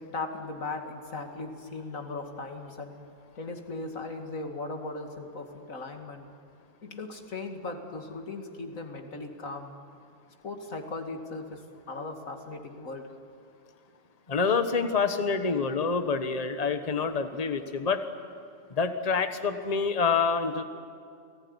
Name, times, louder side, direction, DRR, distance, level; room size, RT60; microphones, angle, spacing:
voice 1, 0.0-2.9 3.4-6.3 6.8-9.7 10.4-13.1, left 3 dB, 90° left, 4 dB, 2.7 m, -38 dB
voice 2, 14.3-18.0 18.7-20.6, left 5 dB, 30° left, 8 dB, 1.3 m, -27 dB
29.5 x 19.0 x 9.8 m, 2.3 s
omnidirectional pair, 1.4 m